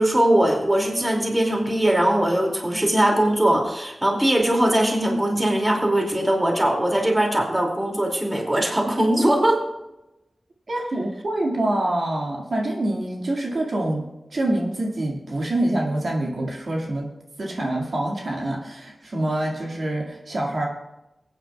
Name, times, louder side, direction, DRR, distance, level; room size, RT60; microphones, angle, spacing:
voice 1, 0.0-9.6, right 1 dB, 20° right, 0 dB, 2.4 m, -20 dB
voice 2, 10.7-14.0 14.3-17.1 17.4-20.7, right 1 dB, 70° right, -1 dB, 2.0 m, -26 dB
23.0 x 9.2 x 2.3 m, 0.93 s
wide cardioid pair, 100°, 0 cm